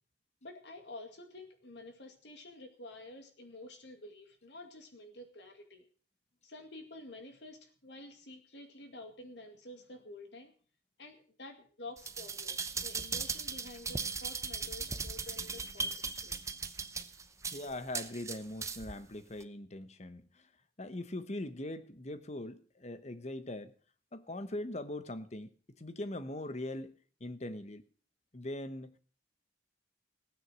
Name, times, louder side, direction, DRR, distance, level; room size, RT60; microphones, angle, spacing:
voice 1, 0.4-5.8 6.4-10.5 11.0-16.3, left 2 dB, 70° left, 2.2 m, -50 dB
sound 1, 12.0-19.0 19.4-19.5, right 4 dB, 15° right, 0.8 m, -38 dB
voice 2, 17.5-20.5 20.8-23.7 24.1-26.9 27.2-27.8 28.3-29.0, left 1 dB, 35° left, 1.0 m, -41 dB
16.5 x 9.4 x 6.2 m
head